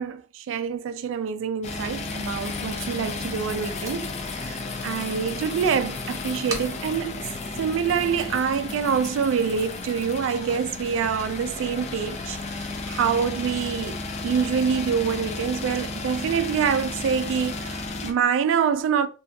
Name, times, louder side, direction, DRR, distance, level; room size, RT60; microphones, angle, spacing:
voice 1, 0.0-7.2 7.6-19.1, right 7 dB, 85° right, 0.3 m, -26 dB
sound 1, 1.6-18.1, left 3 dB, 35° left, 0.3 m, -33 dB
Packing tape duct tape, 1.8-8.3, right 2 dB, 15° right, 0.5 m, -44 dB
2.7 x 2.3 x 2.5 m
head